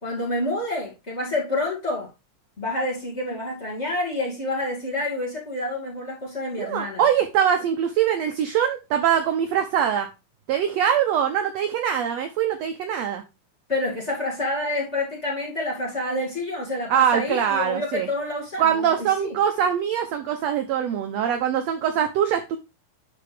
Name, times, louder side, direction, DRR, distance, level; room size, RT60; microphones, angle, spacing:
voice 1, 0.0-2.1 2.6-7.0 13.7-19.4, left 2 dB, 25° left, 2.1 m, -28 dB
voice 2, 6.6-10.1 10.5-13.2 16.9-18.1 18.6-22.6, right 9 dB, 75° right, 1.5 m, -23 dB
12.0 x 4.3 x 3.3 m
omnidirectional pair, 3.8 m